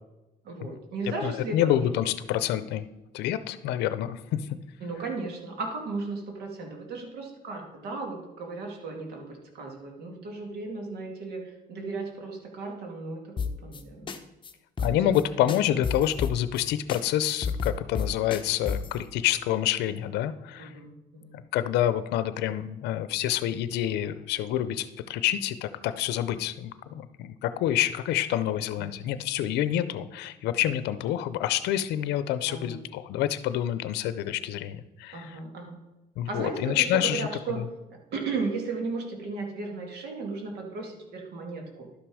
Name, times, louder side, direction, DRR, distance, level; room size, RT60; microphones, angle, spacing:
voice 1, 0.4-1.9 4.8-14.1 14.8-15.1 15.4-15.5 20.6-21.4 28.7-28.8 32.5-32.9 35.1-35.8 36.3-37.6 37.9-41.9, right 3 dB, 75° right, 2 dB, 2.2 m, -35 dB
voice 2, 1.2-2.8 3.1-4.4 14.8-20.7 21.3-35.4 36.2-37.3, left 12 dB, 85° left, 13 dB, 0.6 m, -27 dB
sound 1, 13.4-13.8 14.1-14.2 14.4-14.5 14.8-15.2 15.5-16.6 16.9-17.0 17.3-19.0, left 6 dB, 30° left, 0.8 m, -30 dB
11.5 x 6.0 x 4.9 m, 1.0 s
cardioid pair, 110°, 17 cm